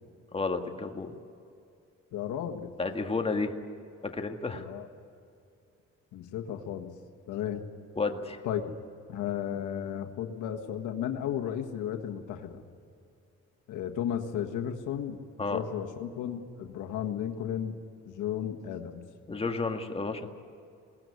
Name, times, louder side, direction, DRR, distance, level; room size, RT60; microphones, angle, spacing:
voice 1, 0.3-1.1 2.8-3.5 4.0-4.6 8.0-8.4 15.4-15.6 19.3-20.3, left 3 dB, 20° left, 4 dB, 1.8 m, -31 dB
voice 2, 2.1-2.7 4.6-4.9 6.1-6.9 7.3-7.6 8.4-8.7 9.1-12.6 13.7-15.2 15.5-17.8 18.1-19.0, left 9 dB, 85° left, 4 dB, 1.7 m, -34 dB
21.5 x 17.5 x 9.6 m, 2.5 s
cardioid pair, 90°, 30 cm